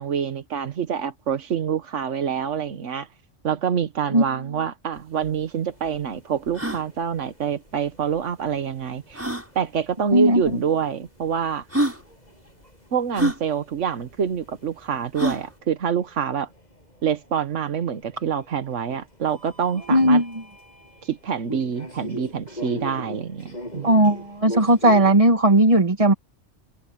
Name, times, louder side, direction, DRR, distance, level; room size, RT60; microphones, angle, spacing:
voice 1, 0.0-3.1 3.4-9.2 9.5-11.6 12.9-16.5 17.0-20.2 21.0-24.1, right 7 dB, 80° right, 1.4 m, -26 dB
sound 1, 5.0-5.1 5.2-5.3 5.9-6.0 6.5-6.8 8.2-8.3 9.1-9.5 10.5-10.6 11.3-11.4 11.7-12.0 13.1-13.4 15.1-15.5, right 1 dB, 10° right, 6.0 m, -25 dB
Gatwick Airport waiting area crowd noise and announcement, 5.7-25.1, left 1 dB, 35° left, 7.7 m, -42 dB
voice 2, 10.1-10.4 19.9-20.3 23.8-26.1, right 1 dB, 30° right, 1.9 m, -17 dB
omnidirectional pair, 1.2 m